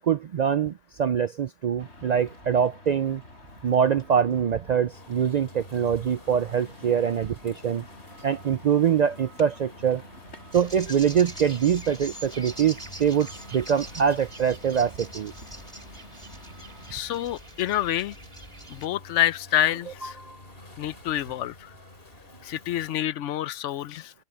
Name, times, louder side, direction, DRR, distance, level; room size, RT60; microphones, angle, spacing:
voice 1, 0.0-3.2 3.6-7.8 8.2-10.0 10.5-15.3 20.0-20.4, right 8 dB, 65° right, 0.4 m, -24 dB
sound 1, 1.8-17.0, left 1 dB, 65° left, 6.6 m, -49 dB
sound 2, 4.9-23.1, left 2 dB, 50° left, 3.5 m, -50 dB
sound 3, 10.5-18.9, right 1 dB, 25° right, 3.4 m, -43 dB
voice 2, 16.9-18.2 18.7-20.2 20.8-21.7 22.4-24.1, left 12 dB, 85° left, 0.9 m, -27 dB
omnidirectional pair, 1.2 m